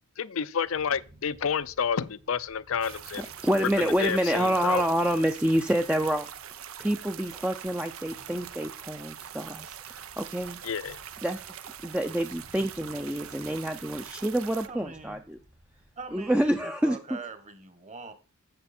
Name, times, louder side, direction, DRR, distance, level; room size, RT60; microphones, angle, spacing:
voice 1, 0.2-3.3 3.8-4.8 10.6-11.0, left 7 dB, 75° left, 0.6 m, -30 dB
sound 1, 0.7-16.5, equal, 70° right, 4.0 m, -57 dB
sound 2, 2.8-14.7, right 9 dB, 90° right, 0.8 m, -43 dB
voice 2, 3.2-6.3 6.8-10.6 11.2-11.5 11.8-15.4 16.1-17.0, right 1 dB, 5° right, 0.5 m, -27 dB
voice 3, 14.6-15.2 16.0-18.1, right 4 dB, 35° right, 1.3 m, -42 dB
12.0 x 8.1 x 4.3 m
head